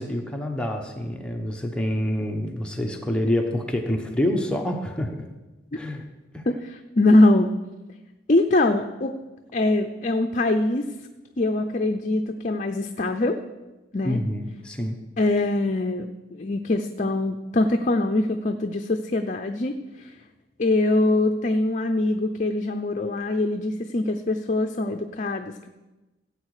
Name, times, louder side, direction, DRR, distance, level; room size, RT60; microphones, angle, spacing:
voice 1, 0.0-5.2 5.8-6.0 6.3-6.4 14.0-15.0, left 1 dB, 5° left, 1 dB, 1.0 m, -27 dB
voice 2, 6.5-7.5 8.3-9.2 9.5-10.9 11.4-13.4 13.9-14.2 15.2-20.1 20.6-25.7, left 2 dB, 40° left, 5 dB, 0.6 m, -23 dB
16.5 x 8.1 x 4.9 m, 1.1 s
head